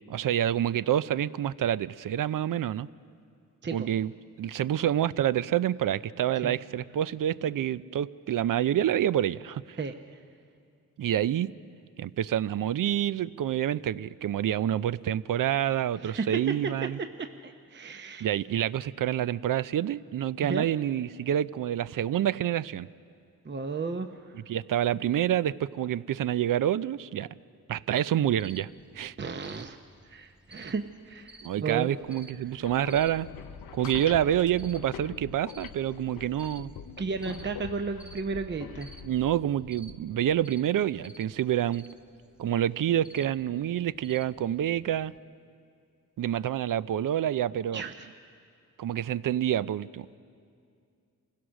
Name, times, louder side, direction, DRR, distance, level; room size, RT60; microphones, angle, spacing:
voice 1, 0.1-2.9 3.7-4.1 4.4-9.8 11.0-11.5 12.0-17.0 18.2-22.9 24.4-27.3 27.7-28.7 28.9-29.1 31.4-33.3 33.7-36.7 39.0-41.9 42.4-45.1 46.2-47.8 48.8-50.2, right 11 dB, 65° right, 18 dB, 0.5 m, -27 dB
voice 2, 16.0-16.9 17.4-18.3 20.4-20.7 23.4-24.2 29.2-29.8 30.1-31.9 37.0-38.9 47.7-48.1, right 4 dB, 30° right, 7 dB, 0.7 m, -33 dB
Cricket, 28.4-45.2, right 1 dB, 5° right, 1.1 m, -55 dB
sound 1, 32.4-40.4, left 8 dB, 75° left, 0.6 m, -44 dB
26.0 x 16.0 x 6.3 m, 2.3 s
cardioid pair, 70°, 35 cm